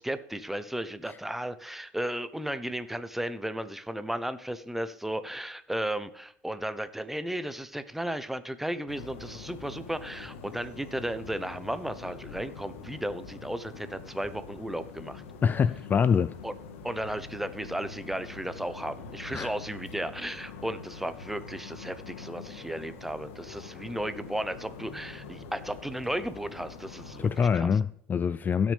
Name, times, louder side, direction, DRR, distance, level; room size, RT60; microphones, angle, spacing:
voice 1, 0.0-15.2 16.4-16.5 16.8-27.7, right 1 dB, 5° right, 0.7 m, -34 dB
sound 1, 8.9-27.5, left 4 dB, 90° left, 1.6 m, -45 dB
voice 2, 15.4-16.3 19.3-19.5 27.2-28.7, left 7 dB, 25° left, 0.3 m, -25 dB
16.5 x 6.3 x 3.4 m
supercardioid pair, 110°, 7 cm